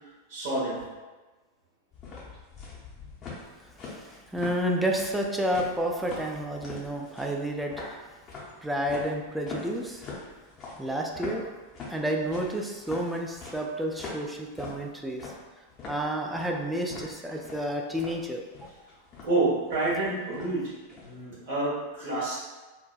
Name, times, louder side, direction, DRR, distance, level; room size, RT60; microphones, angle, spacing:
voice 1, 0.3-0.8 19.2-20.7 21.0-22.4, right 2 dB, 55° right, -7 dB, 1.2 m, -28 dB
sound 1, 1.9-21.2, left 3 dB, 30° left, 0.7 m, -43 dB
voice 2, 3.8-8.1 8.6-10.1 10.8-11.5 11.9-15.3 15.9-18.7, right 1 dB, 5° right, 1 dB, 0.3 m, -30 dB
3.1 x 2.1 x 2.5 m, 1.2 s
figure-of-eight pair, 90°, 0 cm